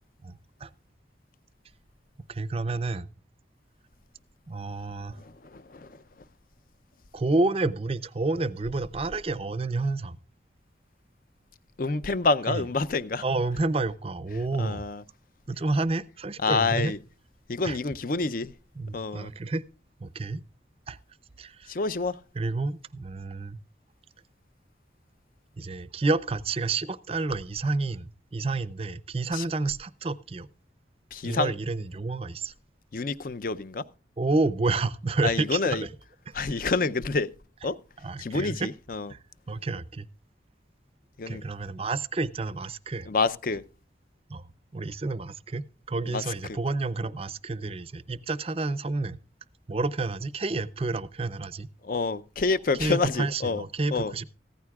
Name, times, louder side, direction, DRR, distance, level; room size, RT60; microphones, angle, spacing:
voice 1, 0.2-0.7 2.3-3.1 4.5-5.2 7.1-10.2 12.5-12.7 13.2-14.8 15.5-16.9 17.6-17.8 18.8-19.6 20.0-20.4 20.9-21.0 21.4-21.7 22.3-23.6 25.6-30.5 31.2-32.5 34.2-35.9 36.3-36.7 38.0-38.7 39.1-39.2 39.5-40.1 41.3-43.1 44.3-44.5 44.7-49.2 49.7-51.7 52.8-54.3, right 3 dB, 30° right, 0.5 m, -29 dB
voice 2, 11.8-13.2 14.6-15.0 16.4-17.0 17.5-18.5 18.9-19.3 21.7-22.1 29.3-29.4 31.1-31.5 32.9-33.8 35.2-35.8 36.3-37.3 37.6-37.7 38.2-39.1 41.2-41.4 43.1-43.6 46.1-46.2 51.9-53.6 53.9-54.1, left 3 dB, 45° left, 0.6 m, -27 dB
15.5 x 14.0 x 2.4 m
head